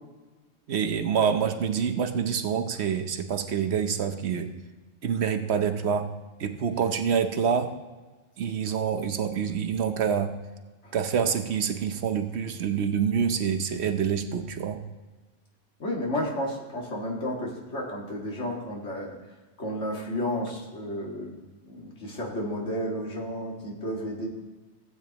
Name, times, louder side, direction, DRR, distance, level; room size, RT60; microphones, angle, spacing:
voice 1, 0.7-4.5 5.0-6.1 6.4-7.7 8.4-10.3 10.9-14.8, right 7 dB, 65° right, 8 dB, 1.0 m, -26 dB
voice 2, 15.8-19.2 19.6-21.4 21.7-24.3, equal, 70° left, -2 dB, 2.3 m, -32 dB
15.5 x 8.7 x 3.0 m, 1.2 s
omnidirectional pair, 1.3 m